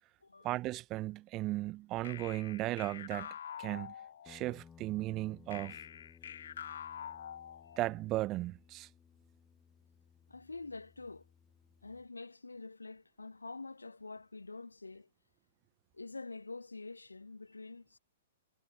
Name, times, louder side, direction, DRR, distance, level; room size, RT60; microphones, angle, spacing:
voice 1, 0.4-3.3 3.6-3.9 4.3-5.8 7.8-8.9, right 17 dB, 30° right, 0.7 m, -36 dB
sound 1, 2.0-4.6 5.5-8.0, left 9 dB, 65° left, 4.8 m, -46 dB
Guitar, 4.2-12.1, left 7 dB, 15° left, 5.7 m, -61 dB
voice 2, 10.3-11.3 11.8-15.1 15.9-18.0, left 3 dB, 85° left, 1.8 m, -46 dB
figure-of-eight pair, 115°, 0 cm